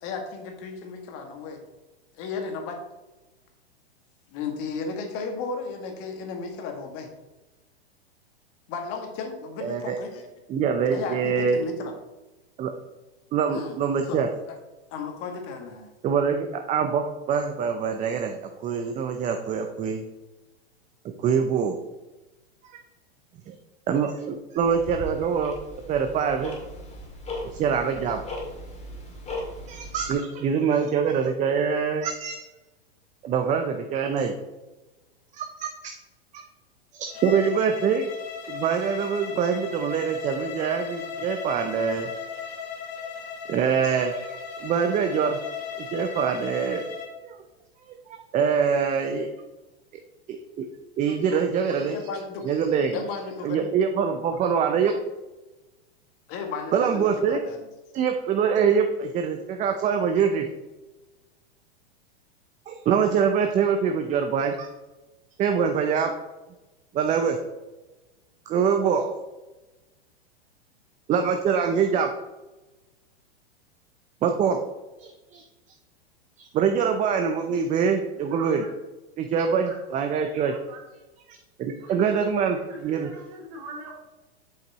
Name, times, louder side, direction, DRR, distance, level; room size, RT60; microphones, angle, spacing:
voice 1, 0.0-1.6 2.1-2.8 4.3-7.1 8.7-10.3 10.9-11.9 13.5-13.8 14.1-14.2 14.9-15.9 51.9-53.7 56.3-57.6, left 4 dB, 45° left, 4 dB, 1.7 m, -34 dB
voice 2, 9.6-10.0 10.5-11.6 12.6-12.7 13.3-14.3 16.0-20.0 21.0-21.8 23.5-23.6 23.9-25.6 25.9-26.6 27.6-28.2 29.7-32.4 33.2-34.3 35.3-35.7 36.3-36.4 36.9-38.1 38.5-42.1 43.5-45.4 45.8-46.8 47.2-47.4 47.9-49.3 50.3-50.6 51.0-52.0 52.4-53.0 53.4-54.9 56.7-57.4 57.9-60.5 62.7-64.7 65.4-66.1 66.9-67.4 68.5-69.1 71.1-72.1 74.2-74.6 75.0-75.4 76.4-78.6 79.2-80.5 81.3-83.1, right 6 dB, 25° right, 5 dB, 0.6 m, -24 dB
Tick-tock, 24.6-30.1, left 1 dB, 20° left, 2.1 m, -38 dB
Bowed string instrument, 37.1-47.1, left 6 dB, 70° left, 1.4 m, -37 dB
voice 3, 78.1-78.7 79.4-79.8 80.5-80.8 81.8-82.2 82.5-84.0, right 2 dB, 50° right, -1 dB, 2.7 m, -43 dB
7.8 x 5.2 x 4.0 m, 1.1 s
hypercardioid pair, 120°, 32 cm